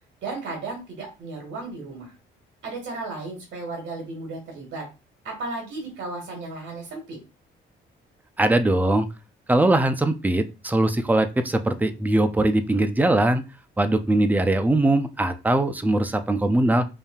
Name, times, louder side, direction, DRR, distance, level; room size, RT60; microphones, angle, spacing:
voice 1, 0.2-2.1 2.6-4.8 5.2-7.2, right 3 dB, 70° right, 0 dB, 1.6 m, -34 dB
voice 2, 8.4-9.1 9.5-13.4 13.8-16.9, right 1 dB, 10° right, 9 dB, 0.5 m, -21 dB
5.1 x 2.7 x 2.3 m, 0.29 s
cardioid pair, 90°, 20 cm